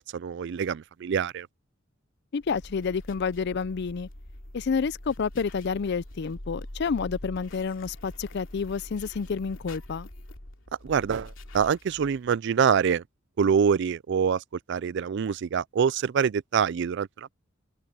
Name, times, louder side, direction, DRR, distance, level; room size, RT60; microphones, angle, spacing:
voice 1, 0.1-1.5 10.8-13.0 13.4-14.4 14.7-17.3, right 7 dB, 60° right, 0.4 m, -25 dB
voice 2, 2.3-4.1 4.5-10.1, left 5 dB, 60° left, 0.5 m, -29 dB
sound 1, 2.4-12.3, left 1 dB, 80° left, 2.7 m, -44 dB
head